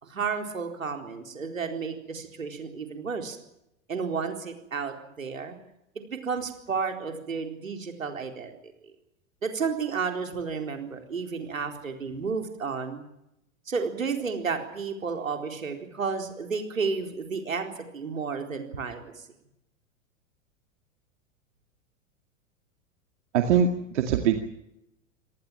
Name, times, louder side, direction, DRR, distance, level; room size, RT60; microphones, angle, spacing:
voice 1, 0.0-3.4 3.9-5.6 6.1-8.5 9.4-13.0 13.7-19.1, right 5 dB, 75° right, 5 dB, 4.2 m, -32 dB
voice 2, 23.3-24.4, right 7 dB, 60° right, 5 dB, 2.3 m, -23 dB
26.0 x 18.5 x 7.5 m, 0.83 s
figure-of-eight pair, 95°, 40 cm